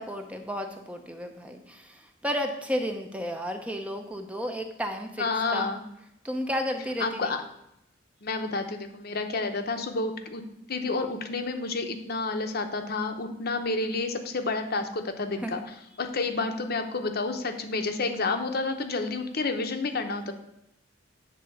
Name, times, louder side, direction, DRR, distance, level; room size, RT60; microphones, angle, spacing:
voice 1, 0.0-5.3 5.5-5.8 6.2-7.3 15.4-15.7, equal, 5° right, 4 dB, 0.6 m, -32 dB
voice 2, 5.2-5.8 7.0-7.4 8.2-10.4 10.7-15.6 16.0-20.3, left 3 dB, 55° left, 6 dB, 0.8 m, -30 dB
8.5 x 3.7 x 6.9 m, 0.82 s
head